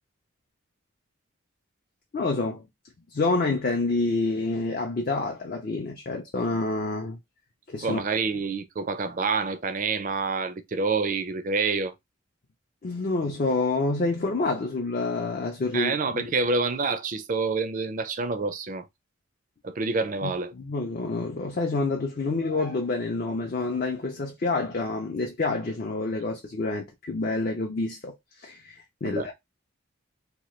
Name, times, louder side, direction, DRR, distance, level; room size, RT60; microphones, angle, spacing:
voice 1, 2.1-2.6 3.1-7.2 7.7-8.0 12.8-16.3 20.2-29.3, left 3 dB, 45° left, 0.4 m, -28 dB
voice 2, 7.8-11.9 15.7-18.9 19.6-20.5 29.0-29.3, right 4 dB, 40° right, 0.4 m, -27 dB
2.9 x 2.2 x 3.0 m
head